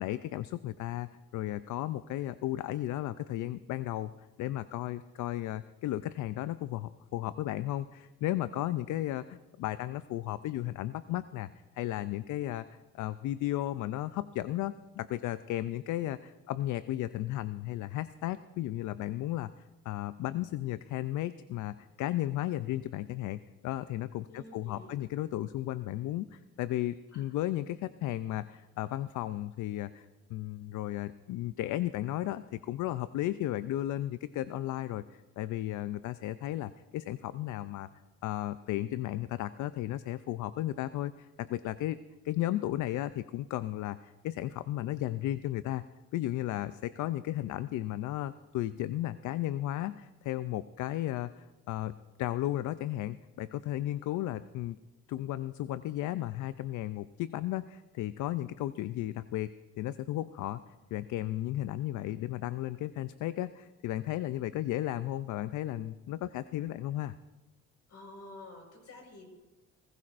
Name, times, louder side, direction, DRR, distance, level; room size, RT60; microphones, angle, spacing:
voice 1, 0.0-4.1 4.4-11.5 11.7-19.5 19.9-37.9 38.2-42.0 42.2-45.8 46.1-54.8 55.1-59.5 59.8-60.6 60.9-67.1, left 14 dB, 75° left, 14 dB, 0.5 m, -34 dB
voice 2, 24.3-25.0 27.1-27.2 67.9-69.3, left 2 dB, 55° left, 1 dB, 4.9 m, -49 dB
20.0 x 16.0 x 2.5 m, 1.1 s
cardioid pair, 90°, 30 cm